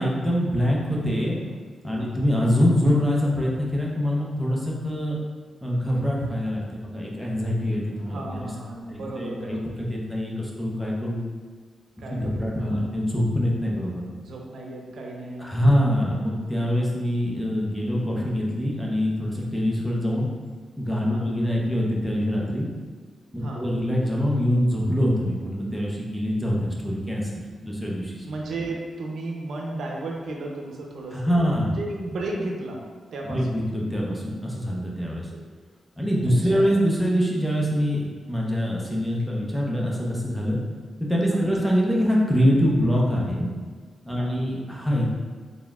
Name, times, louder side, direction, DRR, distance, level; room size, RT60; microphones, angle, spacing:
voice 1, 0.0-1.5 1.8-5.2 5.6-8.5 8.9-9.6 9.9-11.2 12.1-14.0 15.4-20.3 20.8-22.7 23.3-27.2 27.6-28.3 31.1-31.8 33.3-35.3 36.0-40.6 41.0-43.5 44.0-45.1, equal, 5° left, -3 dB, 0.7 m, -24 dB
voice 2, 7.9-9.8 12.0-12.9 14.2-15.6 21.1-21.3 23.4-23.7 28.2-32.9 33.1-33.6 35.3-35.4 36.3-36.7 41.3-41.6 44.2-44.4, right 2 dB, 75° right, -1 dB, 0.6 m, -35 dB
4.1 x 3.6 x 2.3 m, 1.5 s
wide cardioid pair, 115°, 0 cm